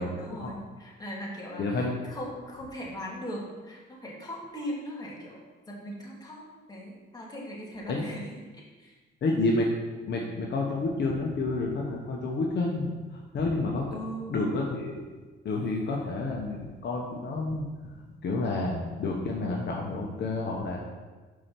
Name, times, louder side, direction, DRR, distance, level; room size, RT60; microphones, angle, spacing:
voice 1, 0.0-6.4 6.7-9.0 13.9-14.4, equal, 20° left, -4 dB, 2.3 m, -39 dB
voice 2, 1.6-1.9 7.9-8.0 9.2-9.7 10.1-13.8 14.3-15.0 15.4-17.7 18.2-20.8, left 2 dB, 60° left, -1 dB, 1.0 m, -29 dB
5.6 x 4.8 x 5.9 m, 1.3 s
cardioid pair, 90°, 20 cm